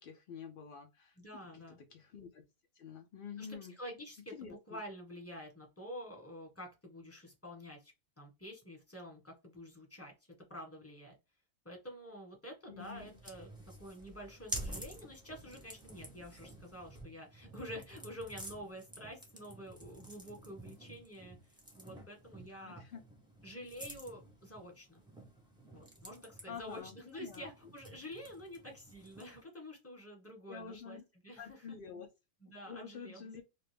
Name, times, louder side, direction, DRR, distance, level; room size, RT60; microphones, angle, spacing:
voice 1, 0.0-1.2 1.5-1.6 1.9-2.4 2.7-3.7 4.3-4.8 12.7-13.2 22.5-23.0 26.5-27.5 30.5-31.0 31.4-32.1 32.5-33.4, left 6 dB, 85° left, 0.4 m, -48 dB
voice 2, 1.2-1.8 3.4-10.1 10.5-11.2 11.6-13.5 13.8-22.8 23.4-25.0 25.7-31.6 32.4-33.3, equal, 10° left, 1.1 m, -49 dB
sound 1, 12.8-29.4, right 1 dB, 5° right, 0.4 m, -50 dB
2.7 x 2.5 x 3.3 m
omnidirectional pair, 1.6 m